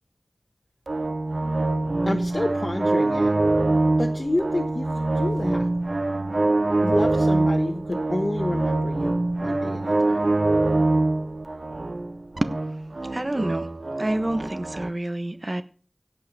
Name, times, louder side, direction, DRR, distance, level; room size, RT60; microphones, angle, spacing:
sound 1, 0.9-14.9, right 2 dB, 85° right, 0.8 m, -24 dB
voice 1, 2.0-3.3 4.0-5.7 6.8-10.3, left 1 dB, 55° left, 2 dB, 1.2 m, -29 dB
voice 2, 13.1-13.7 14.0-15.6, right 1 dB, 45° right, 10 dB, 1.2 m, -27 dB
17.0 x 5.8 x 5.8 m, 0.41 s
wide cardioid pair, 40°, 0 cm